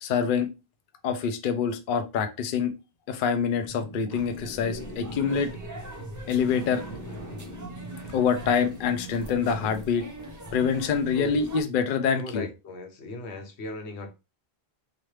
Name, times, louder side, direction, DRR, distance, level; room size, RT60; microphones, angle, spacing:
voice 1, 0.0-0.5 1.0-2.7 3.1-5.5 6.3-6.8 8.1-10.0 10.5-12.5, left 6 dB, 60° left, 0.6 m, -25 dB
sound 1, 3.6-9.8, right 1 dB, 10° left, 1.1 m, -42 dB
sound 2, 4.1-11.6, equal, 30° right, 0.4 m, -42 dB
voice 2, 12.1-14.1, left 2 dB, 85° left, 1.0 m, -37 dB
3.0 x 2.4 x 3.1 m
omnidirectional pair, 1.1 m